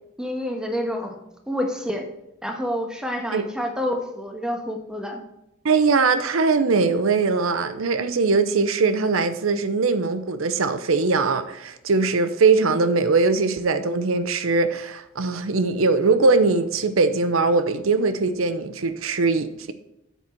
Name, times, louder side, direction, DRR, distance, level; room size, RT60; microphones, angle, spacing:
voice 1, 0.2-1.2 1.5-2.1 2.4-5.2, equal, 5° right, 3 dB, 1.3 m, -28 dB
voice 2, 5.6-19.7, right 4 dB, 90° right, 11 dB, 0.7 m, -21 dB
8.4 x 7.1 x 4.4 m, 0.86 s
head